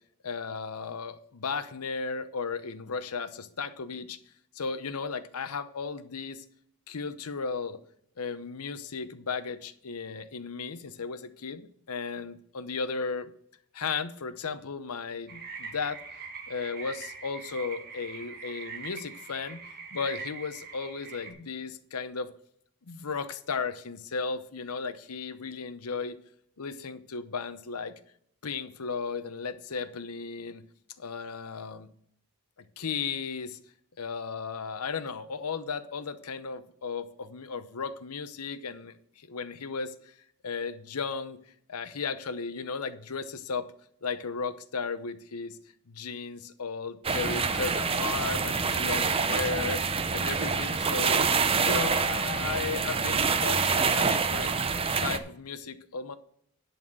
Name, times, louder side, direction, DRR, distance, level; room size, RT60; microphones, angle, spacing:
voice 1, 0.2-4.2 4.6-6.4 6.9-7.8 8.2-13.3 13.7-16.0 16.5-19.6 19.9-22.3 22.9-26.2 26.6-28.0 28.4-30.6 31.0-31.9 32.8-33.6 34.0-40.1 40.4-41.4 41.7-43.7 44.0-45.6 45.9-51.3 51.6-54.6 55.0-56.2, left 5 dB, 85° left, 12 dB, 0.8 m, -35 dB
sound 1, 15.3-21.3, right 4 dB, 45° right, 1.3 m, -42 dB
sound 2, 47.0-55.2, right 5 dB, 25° right, 0.6 m, -26 dB
11.0 x 4.2 x 7.6 m, 0.68 s
head